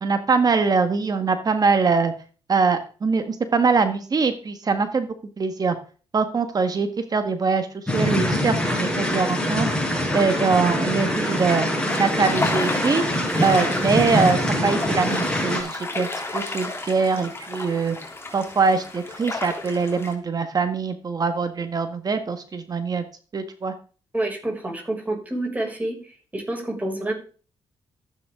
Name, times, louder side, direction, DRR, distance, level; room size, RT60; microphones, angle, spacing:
voice 1, 0.0-2.1 2.5-5.8 6.1-9.7 10.1-11.7 12.0-13.0 13.4-16.1 16.3-18.0 18.3-23.0 23.3-23.7, right 4 dB, 40° right, 9 dB, 1.6 m, -23 dB
sound 1, 7.9-15.6, equal, 10° left, 6.5 m, -24 dB
sound 2, 11.2-20.1, left 3 dB, 25° left, 3.2 m, -32 dB
voice 2, 24.1-26.0 26.3-27.1, right 1 dB, 15° right, 0 dB, 6.2 m, -28 dB
14.5 x 9.1 x 3.8 m, 0.39 s
cardioid pair, 80°, 10 cm